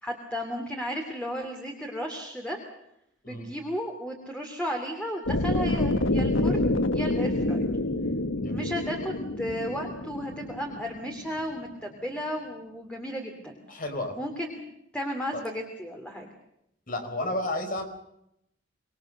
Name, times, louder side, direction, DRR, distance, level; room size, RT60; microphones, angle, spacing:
voice 1, 0.0-2.6 3.2-7.7 8.5-13.6 14.2-14.6 14.9-16.3, equal, 5° left, 2 dB, 3.0 m, -34 dB
sound 1, 5.3-11.4, left 1 dB, 85° left, 1.5 m, -27 dB
voice 2, 8.4-8.7 13.7-14.1 15.3-15.4 16.9-17.8, left 1 dB, 45° left, 6 dB, 5.0 m, -32 dB
26.0 x 21.0 x 6.7 m, 0.78 s
head